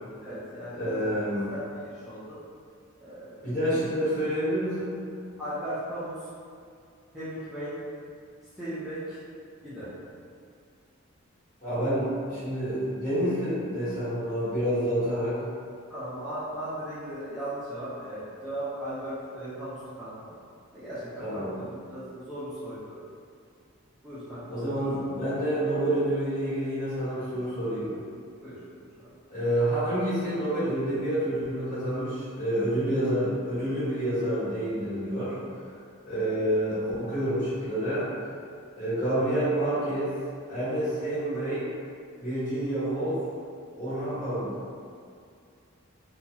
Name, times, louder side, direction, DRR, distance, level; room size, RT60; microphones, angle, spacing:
voice 1, 0.2-2.4 3.0-3.8 5.4-6.3 7.1-7.8 8.5-9.2 9.6-9.9 15.9-20.3 20.7-23.0 24.0-24.8 28.4-29.1, right 1 dB, ahead, -14 dB, 0.5 m, -37 dB
voice 2, 0.7-1.5 3.4-5.0 11.6-15.4 21.2-21.5 24.5-27.9 29.3-35.3 36.0-38.1 38.8-40.1 40.5-41.6 42.2-43.2 43.8-44.5, right 1 dB, 35° left, -13 dB, 1.3 m, -28 dB
2.8 x 2.2 x 2.7 m, 2.3 s
head